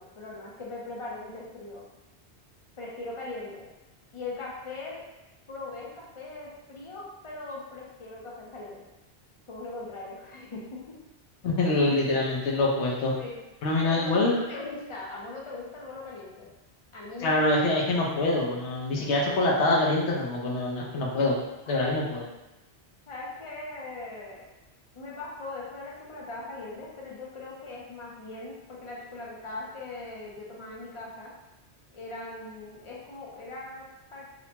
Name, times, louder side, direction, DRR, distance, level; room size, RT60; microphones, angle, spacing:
voice 1, 0.0-1.8 2.8-3.7 4.1-5.1 5.5-8.8 9.5-11.0 13.2-13.4 13.8-16.5 16.9-17.4 18.0-18.1 19.0-19.1 21.7-22.0 23.1-24.4 24.9-31.3 31.9-34.2, left 2 dB, 40° left, -4 dB, 0.4 m, -40 dB
voice 2, 11.4-13.1 13.6-14.3 17.2-21.4 21.7-22.2, left 2 dB, 85° left, -3 dB, 0.9 m, -25 dB
2.8 x 2.1 x 2.8 m, 1.0 s
omnidirectional pair, 1.1 m